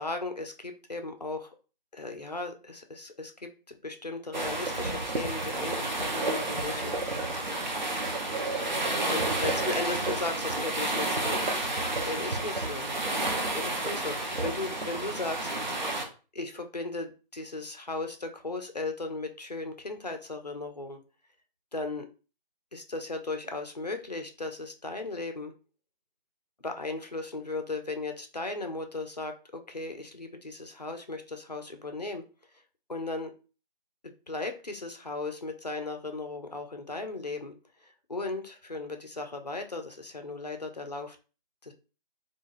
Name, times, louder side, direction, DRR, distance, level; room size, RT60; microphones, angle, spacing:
voice 1, 0.0-1.5 1.9-7.0 9.1-11.4 12.0-12.9 13.5-15.8 16.3-21.0 21.7-22.1 22.7-25.5 26.6-32.2 32.9-33.3 34.0-37.5 37.8-41.2 41.6-41.7, left 2 dB, 45° left, 5 dB, 0.4 m, -36 dB
sound 1, 4.3-16.0, right 2 dB, 50° right, 0.6 m, -30 dB
2.3 x 2.2 x 3.1 m, 0.35 s
figure-of-eight pair, 165°, 29 cm